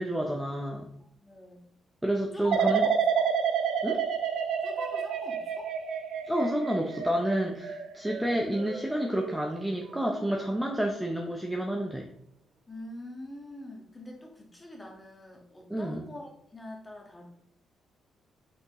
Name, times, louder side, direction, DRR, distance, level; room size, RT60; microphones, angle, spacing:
voice 1, 0.0-0.9 2.0-2.9 3.8-4.0 6.3-12.1 15.7-16.0, right 1 dB, 5° right, 1 dB, 0.6 m, -29 dB
voice 2, 1.0-1.6 2.3-3.3 4.6-5.7 12.7-17.2, left 1 dB, 10° left, 0 dB, 1.5 m, -44 dB
sound 1, 2.5-9.4 9.9-10.3, right 7 dB, 70° right, 0.8 m, -30 dB
8.1 x 5.9 x 3.1 m, 0.68 s
cardioid pair, 175°, 0 cm